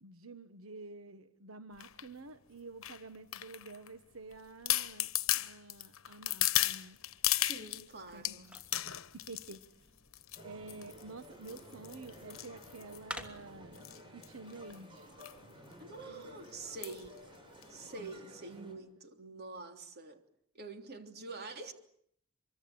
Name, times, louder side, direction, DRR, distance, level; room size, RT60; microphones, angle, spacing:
voice 1, 0.0-7.0 8.1-8.4 8.9-9.6 10.4-13.8 14.1-15.1 18.0-18.1 18.5-18.8, right 3 dB, 90° right, 10 dB, 1.3 m, -50 dB
sound 1, 1.8-2.1 2.8-3.9 4.3-4.4 4.7-7.8 8.2-9.6 10.1-10.4 10.7-11.0 11.5-13.2 13.7-14.0 14.2-14.3 14.5-14.7 15.2-15.4 15.7-15.8 16.8-17.1 17.6-17.7, left 14 dB, 80° left, 1.1 m, -34 dB
sound 2, 6.9-13.8, equal, 5° right, 3.0 m, -52 dB
voice 2, 7.4-8.5 15.8-17.2 17.7-20.2 20.5-21.7, right 3 dB, 50° right, 5 dB, 3.3 m, -46 dB
sound 3, 10.4-18.7, equal, 25° right, 6.5 m, -54 dB
25.0 x 24.0 x 8.6 m, 0.66 s
head